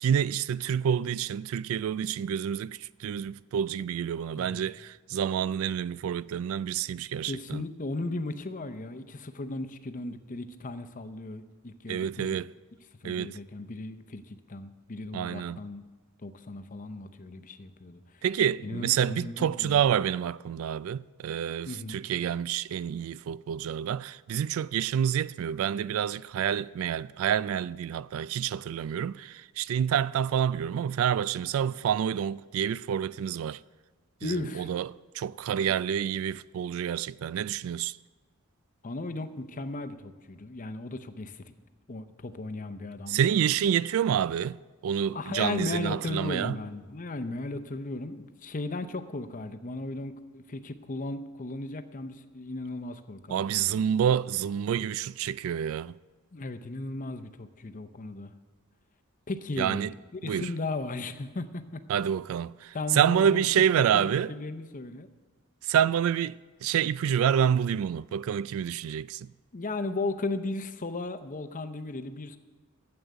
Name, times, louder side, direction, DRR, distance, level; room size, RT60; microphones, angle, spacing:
voice 1, 0.0-7.6 11.9-12.5 13.0-13.4 15.1-15.6 18.2-33.6 34.2-34.9 35.1-38.0 43.1-44.6 44.8-46.6 53.3-56.0 59.6-59.9 60.2-60.5 61.9-64.3 65.6-69.3, right 8 dB, 70° right, 0.3 m, -28 dB
voice 2, 7.2-12.4 13.0-15.8 16.2-18.2 18.6-19.8 21.7-22.0 34.2-34.7 35.7-35.8 38.8-41.5 41.9-43.3 45.1-53.8 56.3-58.3 59.3-59.9 60.2-61.8 62.7-63.4 63.7-65.1 69.5-72.4, left 2 dB, 40° left, 0.7 m, -36 dB
13.0 x 7.9 x 8.1 m
head